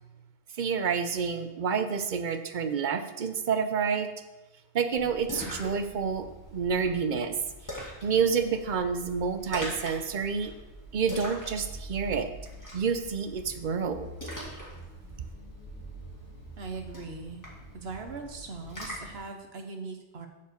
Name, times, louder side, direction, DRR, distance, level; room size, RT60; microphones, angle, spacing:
voice 1, 0.6-4.1 4.7-7.3 7.8-10.5 10.9-12.3 12.7-14.1, right 6 dB, 55° right, 9 dB, 0.7 m, -29 dB
Splash splatter, 4.9-19.2, equal, 20° left, 2.0 m, -43 dB
voice 2, 16.6-17.4 17.7-20.3, right 4 dB, 75° right, 4 dB, 1.2 m, -40 dB
7.1 x 4.7 x 6.6 m, 1.0 s
omnidirectional pair, 1.1 m